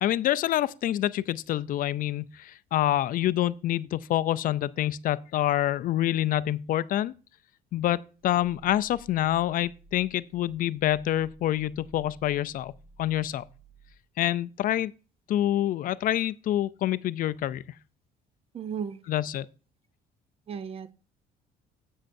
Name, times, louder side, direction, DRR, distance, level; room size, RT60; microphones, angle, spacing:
voice 1, 0.0-7.1 7.7-12.7 13.0-13.4 14.2-14.9 15.3-17.6 19.1-19.5, left 13 dB, 55° left, 0.4 m, -27 dB
Growling, 8.2-14.1, right 3 dB, 60° right, 4.1 m, -55 dB
voice 2, 18.5-19.0 20.5-20.9, right 7 dB, 35° right, 0.6 m, -34 dB
15.0 x 6.4 x 2.6 m
cardioid pair, 110°, 17 cm